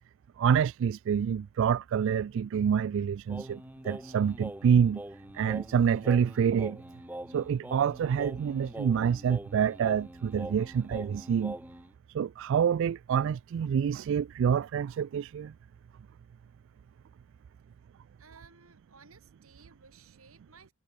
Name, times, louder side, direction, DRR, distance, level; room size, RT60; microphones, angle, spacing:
voice 1, 0.4-5.0 5.3-6.8 7.3-11.6 12.1-15.5, right 7 dB, 60° right, 0.3 m, -27 dB
Singing, 3.3-11.9, right 1 dB, 10° right, 3.3 m, -43 dB
voice 2, 18.2-20.7, right 4 dB, 80° right, 7.9 m, -57 dB
head